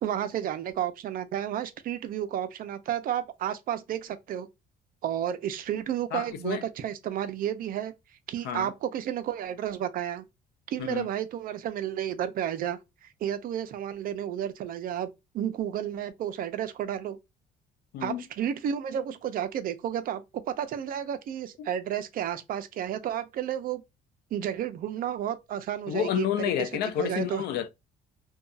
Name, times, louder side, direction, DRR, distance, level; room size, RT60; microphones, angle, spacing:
voice 1, 0.0-4.5 5.0-7.9 8.3-10.2 10.7-15.1 15.3-17.2 18.0-23.8 24.3-26.3 26.6-26.7 27.0-27.4, right 10 dB, 60° right, 0.5 m, -32 dB
voice 2, 6.1-6.6 8.4-8.7 10.8-11.1 17.9-18.2 21.6-21.7 25.9-27.7, left 10 dB, 75° left, 0.4 m, -30 dB
2.7 x 2.3 x 2.3 m
cardioid pair, 110°, 17 cm